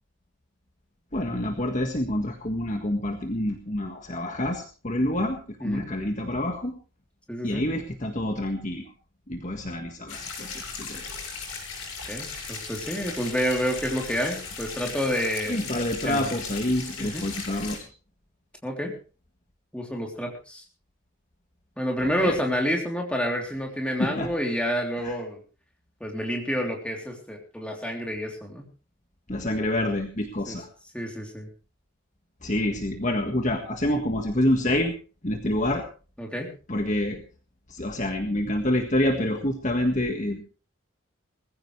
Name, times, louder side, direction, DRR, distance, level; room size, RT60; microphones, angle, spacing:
voice 1, 1.1-6.7 7.4-8.8 9.3-11.0 15.5-17.9 22.0-22.4 24.0-24.3 25.0-25.1 29.3-30.7 32.4-34.9 35.2-35.8 36.7-37.2 37.7-40.4, left 1 dB, 35° left, 4 dB, 1.7 m, -27 dB
voice 2, 7.3-7.6 12.1-15.6 16.0-16.2 17.0-17.2 18.6-18.9 19.7-20.6 21.8-25.4 26.0-28.6 30.5-30.6 30.9-31.5 36.2-36.5, equal, 5° left, 0 dB, 3.3 m, -29 dB
sound 1, 10.1-17.8, left 5 dB, 85° left, 7.0 m, -37 dB
20.5 x 15.0 x 3.2 m, 0.37 s
head